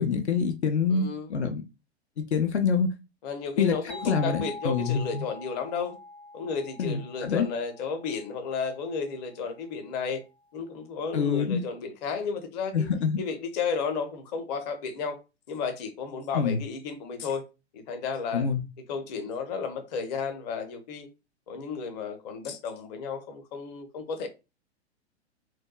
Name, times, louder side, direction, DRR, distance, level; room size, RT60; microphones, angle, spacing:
voice 1, 0.0-1.0 1.3-1.6 2.2-2.9 3.6-3.7 4.0-5.3 6.8-7.5 11.1-11.6 12.7-13.2 16.3-16.6 18.3-18.6, left 6 dB, 75° left, 0.6 m, -26 dB
voice 2, 0.9-1.4 3.2-6.0 6.3-10.2 10.5-12.9 13.2-15.2 15.5-17.4 17.7-18.5 18.9-21.1 21.5-24.3, left 5 dB, 40° left, 0.7 m, -33 dB
sound 1, 3.9-9.4, left 2 dB, 5° left, 0.4 m, -44 dB
4.3 x 2.2 x 2.3 m
figure-of-eight pair, 105°, 34 cm